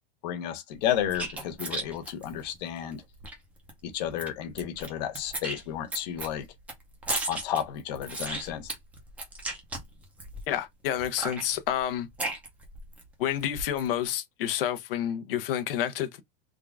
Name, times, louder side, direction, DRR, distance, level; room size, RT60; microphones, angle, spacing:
voice 1, 0.2-3.0 3.8-6.5 7.3-8.7, left 10 dB, 45° left, 0.8 m, -32 dB
sound 1, 0.8-3.3 3.7-3.8 4.0-4.9 5.1-10.5 11.0-13.0 13.4-13.9, right 2 dB, 5° right, 0.5 m, -35 dB
voice 2, 10.5-12.1 13.2-16.2, left 10 dB, 70° left, 0.8 m, -29 dB
3.6 x 2.4 x 3.4 m
supercardioid pair, 175°, 29 cm